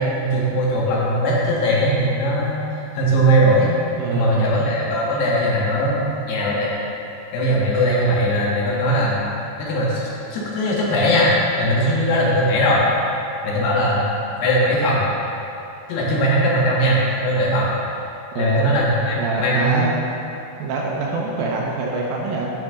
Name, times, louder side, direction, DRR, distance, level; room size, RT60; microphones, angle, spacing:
voice 1, 0.0-2.6 2.9-3.8 4.1-6.8 7.3-11.3 11.6-12.8 13.4-14.1 14.3-15.1 15.9-17.7 18.4-19.9, equal, 80° left, -5 dB, 3.5 m, -19 dB
voice 2, 3.9-4.5 18.3-18.7 19.2-19.9 20.6-22.5, right 3 dB, 75° right, -2 dB, 2.4 m, -24 dB
12.0 x 6.3 x 3.6 m, 2.8 s
omnidirectional pair, 4.6 m